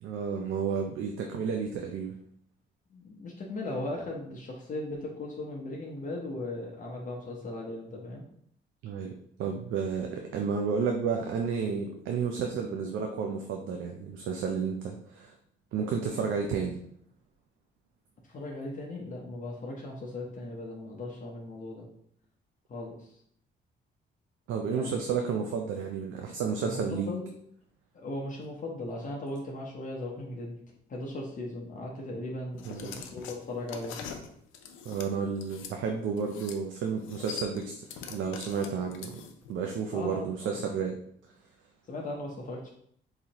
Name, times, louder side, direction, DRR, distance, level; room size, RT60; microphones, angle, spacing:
voice 1, 0.0-2.1 8.8-9.1 9.4-15.3 15.7-16.8 24.5-27.1 32.7-32.9 34.8-39.2 39.5-41.0, right 6 dB, 80° right, 3 dB, 0.5 m, -31 dB
voice 2, 2.9-8.2 18.2-21.9 22.7-23.1 24.7-24.9 26.6-27.3 27.9-30.6 30.9-34.0 39.9-40.6 41.9-42.7, left 2 dB, 40° left, -2 dB, 0.7 m, -38 dB
sound 1, 32.6-35.7 36.2-36.6 36.9-39.5, left 7 dB, 90° left, 0.5 m, -43 dB
4.0 x 2.7 x 2.9 m, 0.68 s
cardioid pair, 90°, 20 cm